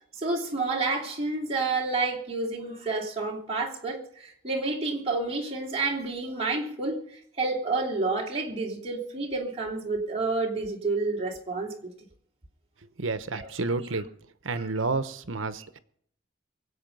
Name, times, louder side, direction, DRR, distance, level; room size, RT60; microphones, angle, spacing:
voice 1, 0.1-11.9 13.3-13.5 13.9-14.0 14.5-14.7, right 3 dB, 30° right, 3.2 m, -29 dB
voice 2, 13.0-14.1 14.4-15.8, right 3 dB, 80° right, 1.1 m, -30 dB
24.0 x 8.4 x 5.4 m
head